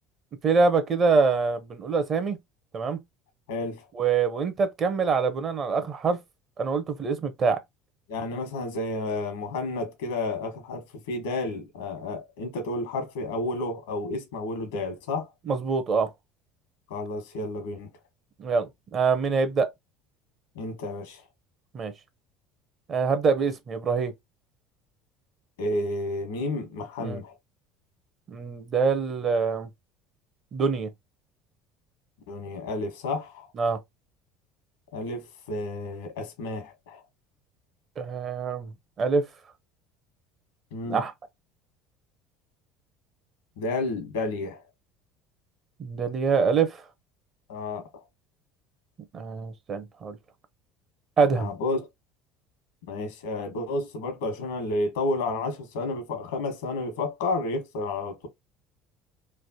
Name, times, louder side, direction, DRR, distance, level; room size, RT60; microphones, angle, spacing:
voice 1, 0.4-2.4 2.7-3.0 4.0-6.2 6.6-7.6 15.5-16.1 18.4-19.7 21.7-21.9 22.9-24.1 27.0-27.2 28.3-29.7 30.5-30.9 33.6-33.8 38.0-38.7 39.0-39.2 40.9-41.1 45.8-46.8 49.1-50.2 51.2-51.5, right 5 dB, 40° right, 0.7 m, -25 dB
voice 2, 3.5-3.8 8.1-15.3 16.9-17.9 20.5-21.2 25.6-27.3 32.3-33.5 34.9-37.0 40.7-41.0 43.6-44.6 47.5-47.9 51.4-51.8 52.9-58.3, left 2 dB, 90° left, 1.1 m, -31 dB
3.2 x 2.1 x 2.7 m
supercardioid pair, 95°, 0 cm